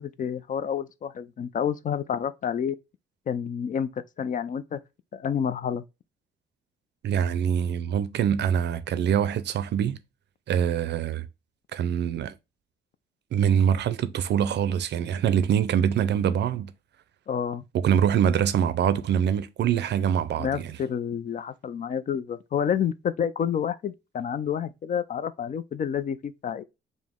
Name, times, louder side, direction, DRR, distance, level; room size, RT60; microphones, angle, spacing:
voice 1, 0.0-2.8 3.3-4.8 5.1-5.8 17.3-17.6 20.4-26.6, left 8 dB, 40° left, 0.4 m, -29 dB
voice 2, 7.0-10.0 10.5-11.3 11.7-12.3 13.3-16.7 17.7-20.7, right 8 dB, 60° right, 0.5 m, -24 dB
4.9 x 2.1 x 3.6 m
cardioid pair, 90°, 20 cm